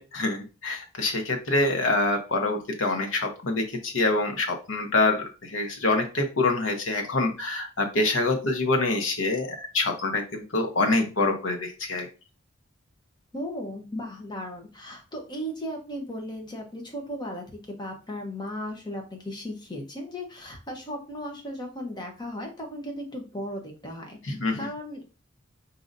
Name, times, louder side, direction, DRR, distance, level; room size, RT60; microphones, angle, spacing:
voice 1, 0.0-12.1 24.2-24.6, left 2 dB, 70° left, 4 dB, 0.9 m, -26 dB
voice 2, 13.3-25.0, equal, 20° left, 2 dB, 0.9 m, -36 dB
5.0 x 2.8 x 2.6 m, 0.32 s
head